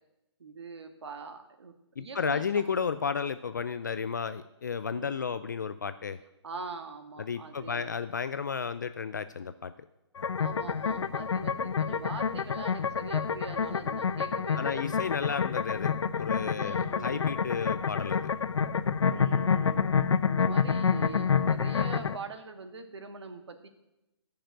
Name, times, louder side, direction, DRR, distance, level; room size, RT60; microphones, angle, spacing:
voice 1, 0.4-2.8 4.9-5.1 6.4-7.9 10.4-14.8 16.5-17.4 19.1-19.9 20.3-23.7, right 4 dB, 70° right, 7 dB, 1.8 m, -43 dB
voice 2, 2.0-6.2 7.2-9.7 14.5-18.3, left 6 dB, 40° left, 12 dB, 0.4 m, -33 dB
sound 1, 10.2-22.2, left 6 dB, 80° left, 0.7 m, -28 dB
10.5 x 6.7 x 8.9 m, 0.91 s
hypercardioid pair, 175°, 15 cm